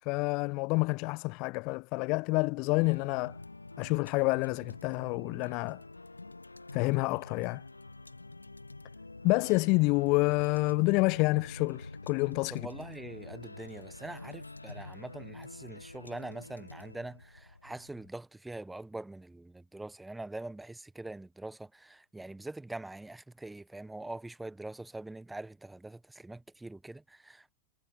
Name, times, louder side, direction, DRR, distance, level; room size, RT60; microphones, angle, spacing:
voice 1, 0.1-3.4 3.8-5.8 6.7-7.6 9.2-12.7, left 27 dB, 45° left, 0.9 m, -28 dB
sound 1, 2.8-18.1, left 2 dB, 80° left, 1.5 m, -47 dB
voice 2, 12.5-27.5, right 2 dB, 5° right, 1.5 m, -43 dB
figure-of-eight pair, 90°, 0 cm